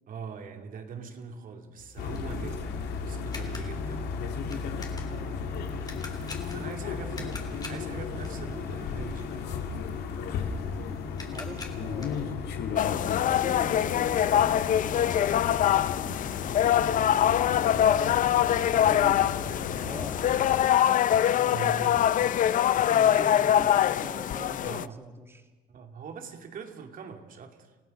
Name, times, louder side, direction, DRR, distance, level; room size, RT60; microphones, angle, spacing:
voice 1, 0.1-4.1 6.4-7.4 7.7-9.5 21.5-22.2 24.6-25.0 25.7-27.8, right 6 dB, 55° right, 5 dB, 2.6 m, -42 dB
sound 1, 1.8-12.4, left 3 dB, 25° left, 3.5 m, -47 dB
sound 2, 2.0-20.6, left 5 dB, 75° left, 2.7 m, -35 dB
voice 2, 5.1-5.4 6.6-7.7 11.3-12.5 13.0-16.2 17.5-20.5 21.3-21.6 22.9-25.5, right 2 dB, 15° right, 6 dB, 2.2 m, -44 dB
sound 3, 12.8-24.8, left 10 dB, 50° left, 0.6 m, -24 dB
29.0 x 16.0 x 6.6 m, 1.3 s
cardioid pair, 110°, 17 cm